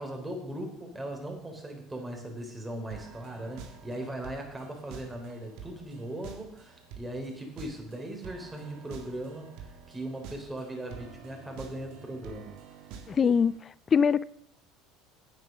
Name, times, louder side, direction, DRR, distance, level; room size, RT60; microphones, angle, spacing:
voice 1, 0.0-12.5, right 1 dB, 15° right, 3.8 m, -39 dB
sound 1, 2.9-13.6, right 6 dB, 60° right, 1.8 m, -48 dB
voice 2, 13.1-13.5 13.9-14.2, left 6 dB, 30° left, 0.4 m, -22 dB
9.6 x 9.3 x 6.2 m
hypercardioid pair, 70°, 0 cm